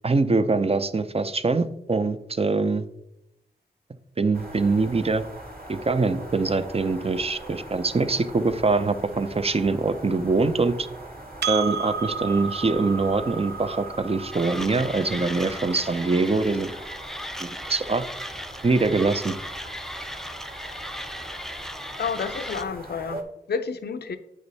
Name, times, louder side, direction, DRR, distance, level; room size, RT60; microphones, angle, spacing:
voice 1, 0.0-2.9 4.2-5.2 5.7-10.9 11.5-16.7 17.4-18.0 18.6-19.4, right 3 dB, 35° right, 11 dB, 0.7 m, -23 dB
sound 1, 4.3-23.2, right 1 dB, 65° right, 1.9 m, -42 dB
Percussion, 11.4-16.2, right 6 dB, 85° right, 0.5 m, -33 dB
Mechanisms, 14.3-22.6, equal, ahead, 0.5 m, -37 dB
voice 2, 22.0-23.2 23.5-24.2, left 5 dB, 75° left, 9 dB, 0.6 m, -30 dB
8.9 x 5.0 x 4.1 m, 0.85 s
cardioid pair, 50°, 17 cm